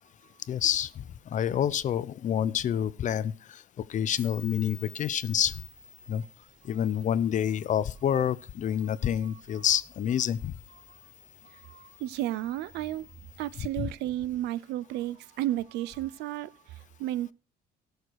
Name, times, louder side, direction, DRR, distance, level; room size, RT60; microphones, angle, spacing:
voice 1, 0.5-3.6 3.9-5.5 6.1-6.2 6.7-10.5 13.8-13.9, left 9 dB, 45° left, 0.7 m, -28 dB
sound 1, 4.1-13.7, left 1 dB, 10° right, 7.6 m, -52 dB
voice 2, 11.4-13.1 13.4-17.3, right 14 dB, 85° right, 0.5 m, -33 dB
17.5 x 6.6 x 4.7 m
cardioid pair, 110°, 17 cm